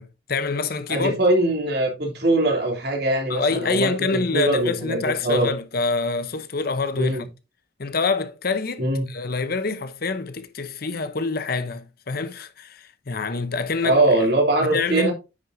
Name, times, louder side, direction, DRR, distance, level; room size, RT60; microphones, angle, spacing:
voice 1, 0.0-1.2 3.3-7.3 7.8-14.0 14.6-15.1, left 4 dB, 50° left, 0.8 m, -26 dB
voice 2, 0.9-5.5 6.9-7.3 8.8-9.1 13.8-15.1, right 2 dB, 60° right, 2.9 m, -22 dB
9.3 x 6.4 x 2.7 m
head